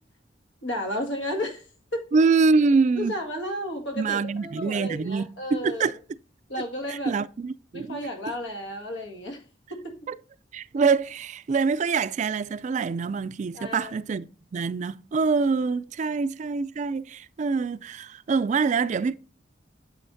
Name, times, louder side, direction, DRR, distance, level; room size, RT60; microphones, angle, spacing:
voice 1, 0.6-1.6 1.9-2.1 2.9-5.9 6.5-7.2 7.7-9.4 9.7-10.0 13.5-13.9, left 1 dB, 85° left, 1.8 m, -33 dB
voice 2, 2.1-3.1 4.0-6.0 6.9-8.0 10.1-10.2 10.5-14.3 14.5-19.2, right 4 dB, 40° right, 0.3 m, -25 dB
8.9 x 7.0 x 2.6 m
head